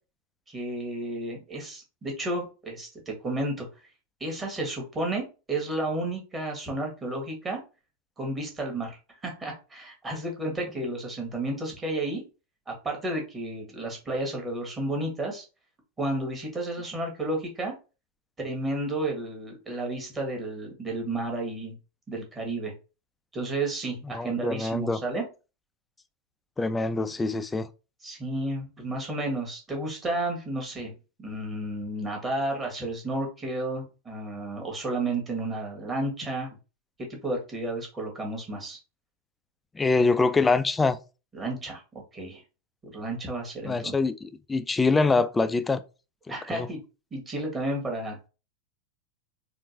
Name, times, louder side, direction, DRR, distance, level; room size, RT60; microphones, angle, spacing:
voice 1, 0.5-3.7 4.2-7.6 8.2-12.2 12.7-15.4 16.0-17.7 18.4-21.7 22.1-22.7 23.3-25.3 28.0-36.5 37.0-38.8 41.3-41.8 42.1-42.4 42.8-43.9 46.3-46.8 47.1-48.3, right 2 dB, 20° right, 1.4 m, -32 dB
voice 2, 24.1-25.0 26.6-27.7 39.8-41.0 43.7-45.8 46.5-46.7, left 3 dB, 10° left, 0.3 m, -24 dB
4.3 x 2.5 x 2.7 m
figure-of-eight pair, 90°, 0 cm